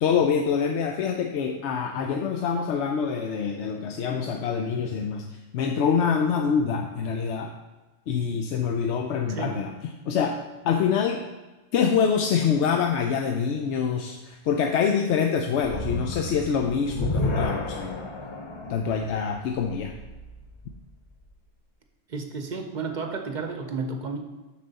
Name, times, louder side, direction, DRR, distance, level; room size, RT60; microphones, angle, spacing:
voice 1, 0.0-5.2 5.5-7.5 8.1-9.7 10.1-10.4 10.6-11.2 11.7-18.0 18.7-19.9, left 6 dB, 70° left, 4 dB, 0.8 m, -25 dB
sound 1, 15.6-20.9, left 1 dB, 35° left, 0.5 m, -32 dB
voice 2, 22.1-24.2, right 4 dB, 45° right, 4 dB, 0.8 m, -32 dB
7.2 x 6.3 x 4.0 m, 1.2 s
omnidirectional pair, 1.3 m